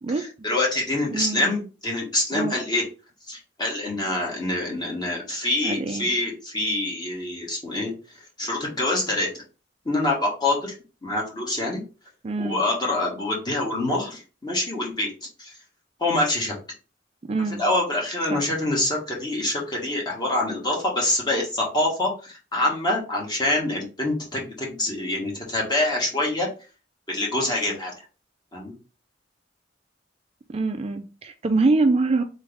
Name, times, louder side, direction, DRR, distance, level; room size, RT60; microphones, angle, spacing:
voice 1, 0.1-2.8 3.3-7.9 8.4-9.4 9.8-10.7 11.0-11.8 12.4-15.1 15.4-15.5 16.0-16.5 17.6-26.5 27.1-27.9 28.5-28.7, left 2 dB, 25° left, -2 dB, 1.5 m, -25 dB
voice 2, 1.1-1.5 2.3-2.6 5.6-6.1 12.2-12.6 17.2-17.6 18.3-18.5 30.5-32.2, right 3 dB, 35° right, 6 dB, 0.4 m, -24 dB
4.0 x 3.3 x 3.5 m, 0.34 s
head